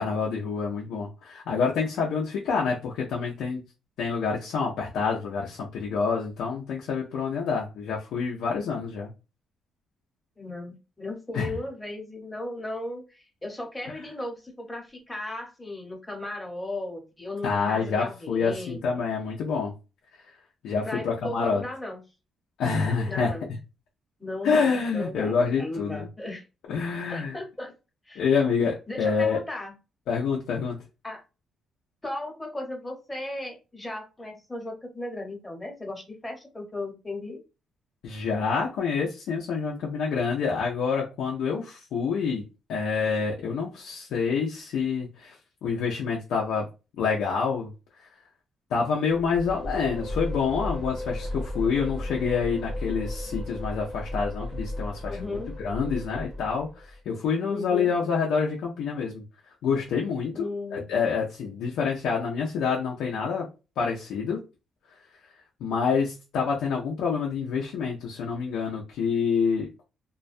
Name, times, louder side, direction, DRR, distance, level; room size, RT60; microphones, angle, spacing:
voice 1, 0.0-3.6 4.0-9.1 11.3-11.5 17.4-19.7 20.6-21.6 22.6-23.3 24.4-26.1 26.7-27.4 28.2-29.4 30.1-30.8 38.0-42.4 42.7-45.4 45.6-46.7 47.0-47.7 48.0-48.1 48.7-59.2 59.6-63.5 63.8-64.4 65.6-69.8, left 5 dB, 85° left, 0.5 m, -27 dB
voice 2, 10.4-18.8 20.8-22.0 23.0-23.5 24.2-26.4 27.1-27.7 28.1-28.2 28.9-29.7 31.0-31.2 32.0-37.4 55.0-55.5 57.5-57.9 60.3-60.9, left 2 dB, 15° left, 0.9 m, -36 dB
sound 1, 49.1-57.0, left 1 dB, 20° right, 0.7 m, -35 dB
2.2 x 2.2 x 2.5 m
cardioid pair, 90°, 0 cm